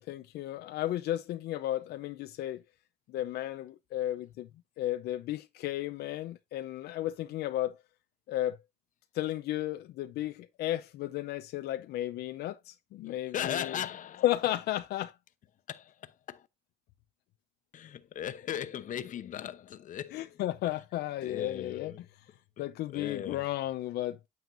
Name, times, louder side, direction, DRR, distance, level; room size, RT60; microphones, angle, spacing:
voice 1, 0.0-2.6 3.1-4.5 4.8-7.8 8.3-8.6 9.1-13.8 14.2-15.1 20.1-22.1 22.6-24.3, left 14 dB, 75° left, 0.6 m, -34 dB
voice 2, 13.3-14.2 15.7-16.4 17.7-20.3 21.2-22.0 22.9-23.4, left 10 dB, 50° left, 0.8 m, -38 dB
9.3 x 7.1 x 2.6 m
cardioid pair, 110°, 17 cm